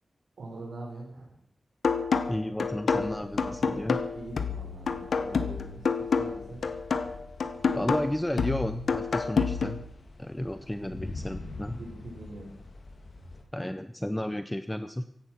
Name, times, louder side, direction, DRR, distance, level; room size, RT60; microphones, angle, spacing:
voice 1, 0.4-1.3 3.6-3.8 4.1-6.6 10.4-10.5 10.8-11.0 11.7-12.5, right 2 dB, 85° right, -4 dB, 4.0 m, -43 dB
sound 1, 1.8-9.8, left 5 dB, 85° left, 1.2 m, -28 dB
voice 2, 2.3-4.0 7.7-9.8 10.2-11.8 13.5-15.0, left 1 dB, 10° left, 10 dB, 0.6 m, -32 dB
sound 2, 3.0-13.4, left 2 dB, 60° left, 2.5 m, -46 dB
16.0 x 11.5 x 5.9 m, 0.74 s
wide cardioid pair, 140°, 0 cm